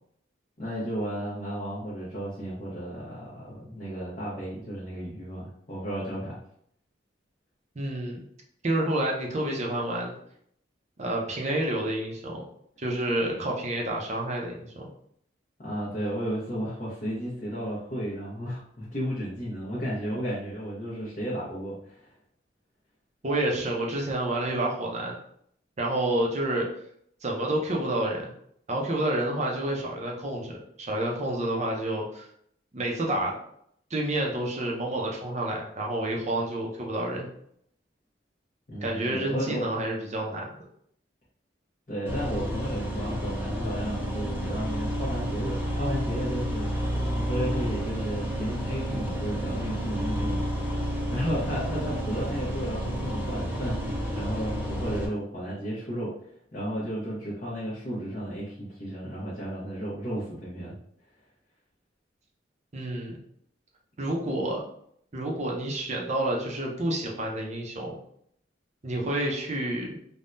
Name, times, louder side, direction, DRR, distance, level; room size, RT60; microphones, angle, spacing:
voice 1, 0.6-6.4 15.6-22.1 38.7-39.6 41.9-46.9 47.2-50.4 51.1-56.1 56.5-60.7, equal, 45° left, -9 dB, 0.9 m, -33 dB
voice 2, 7.8-8.2 8.6-10.1 11.0-12.4 12.8-14.8 23.2-25.2 25.8-26.7 27.2-28.3 28.7-32.3 32.7-33.4 33.9-37.3 38.8-40.5 62.7-63.2 64.0-64.6 65.1-68.0 68.8-70.0, right 1 dB, 40° right, -1 dB, 0.6 m, -29 dB
sound 1, 42.1-55.1, equal, 10° right, 0.9 m, -30 dB
3.5 x 2.2 x 2.6 m, 0.68 s
head